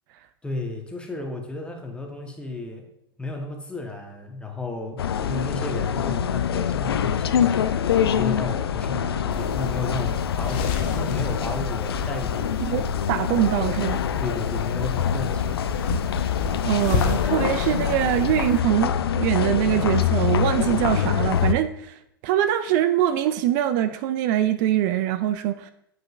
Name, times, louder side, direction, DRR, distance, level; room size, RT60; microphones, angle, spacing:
voice 1, 0.4-2.9 3.2-12.7 14.2-15.7, left 3 dB, 10° left, 2 dB, 1.0 m, -33 dB
sound 1, 5.0-21.5, left 8 dB, 85° left, 0.4 m, -25 dB
sound 2, 9.3-18.6, left 4 dB, 55° left, 0.8 m, -32 dB
voice 2, 12.6-14.0 16.6-25.7, right 11 dB, 50° right, 11 dB, 0.4 m, -23 dB
7.7 x 5.1 x 2.4 m, 0.76 s
hypercardioid pair, 105°, 13 cm